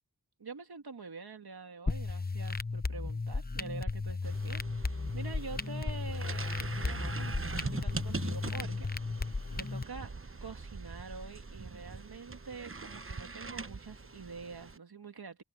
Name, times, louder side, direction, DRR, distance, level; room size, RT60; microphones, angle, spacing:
voice 1, 0.4-10.1 10.4-15.4, right 4 dB, 80° right, 2.1 m, -46 dB
sound 1, 1.9-9.8, left 3 dB, 25° left, 0.9 m, -35 dB
sound 2, 4.2-14.8, right 4 dB, 35° right, 1.1 m, -42 dB
wide cardioid pair, 50°, 37 cm